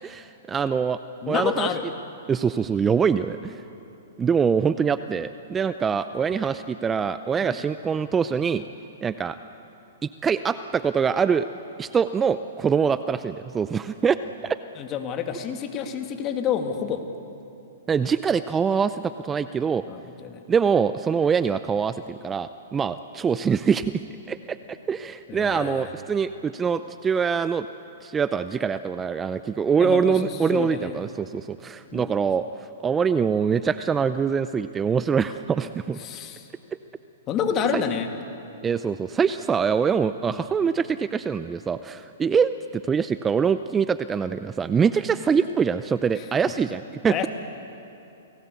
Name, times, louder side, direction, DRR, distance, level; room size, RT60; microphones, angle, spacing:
voice 1, 0.0-1.0 1.3-1.7 2.3-3.6 4.2-8.6 9.0-9.4 10.0-11.5 11.8-14.6 17.9-19.8 20.5-23.9 24.3-27.7 28.0-36.0 37.7-37.8 38.6-47.3, right 6 dB, 15° right, 12 dB, 0.6 m, -24 dB
voice 2, 1.2-1.9 7.4-7.6 14.8-17.0 19.9-20.4 25.3-25.9 29.8-30.9 31.9-32.1 36.0-36.5 37.3-38.1 40.3-40.4 46.2-46.3 47.1-47.3, left 7 dB, 30° left, 5 dB, 2.4 m, -28 dB
29.5 x 19.0 x 8.3 m, 2.8 s
hypercardioid pair, 130°, 0 cm